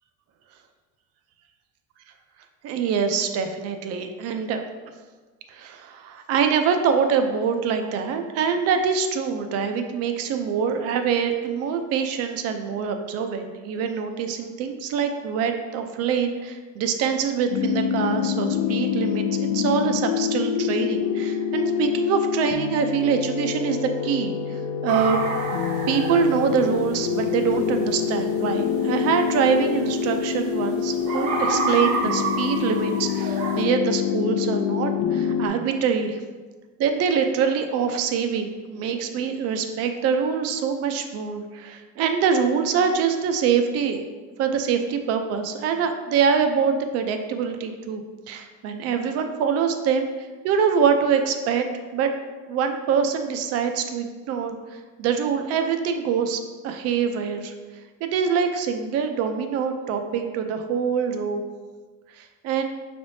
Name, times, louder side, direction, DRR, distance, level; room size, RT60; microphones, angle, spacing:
voice 1, 2.6-4.6 5.5-25.2 25.9-36.2 36.8-44.0 44.4-51.7 51.9-52.1 52.5-57.5 58.0-61.4 62.2-62.6, right 6 dB, 50° right, 6 dB, 0.5 m, -24 dB
sound 1, 17.5-35.5, left 8 dB, 85° left, 0.6 m, -26 dB
sound 2, 24.9-33.6, right 3 dB, 80° right, 1.0 m, -31 dB
5.9 x 3.4 x 2.7 m, 1.4 s
cardioid pair, 155°, 31 cm